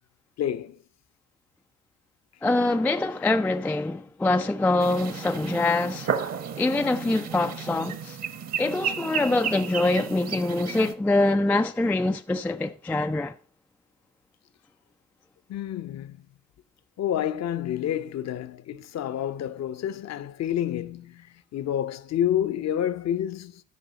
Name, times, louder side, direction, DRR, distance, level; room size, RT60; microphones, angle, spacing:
voice 1, 0.4-0.8 15.5-16.2 17.0-23.6, left 10 dB, 40° left, 0.7 m, -29 dB
voice 2, 2.4-6.1 6.6-8.2 8.6-13.4, left 2 dB, 5° left, 0.3 m, -24 dB
sound 1, 4.8-10.9, right 7 dB, 40° right, 1.1 m, -33 dB
13.5 x 5.4 x 3.9 m
figure-of-eight pair, 45°, 40 cm